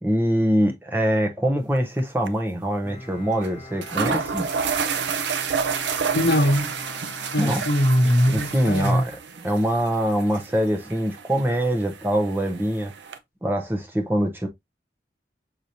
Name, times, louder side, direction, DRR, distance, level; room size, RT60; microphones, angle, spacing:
voice 1, 0.0-4.5 7.4-7.6 8.3-9.1 9.4-12.9 13.4-14.5, equal, 10° right, 0.6 m, -23 dB
sound 1, 1.8-2.0 2.3-2.4 3.4-3.5 3.8-13.2, right 6 dB, 90° right, 0.6 m, -30 dB
Bowed string instrument, 2.8-9.0, left 2 dB, 25° left, 1.3 m, -43 dB
voice 2, 6.1-6.7 7.3-9.0, equal, 60° left, 0.9 m, -20 dB
6.4 x 2.9 x 2.6 m
head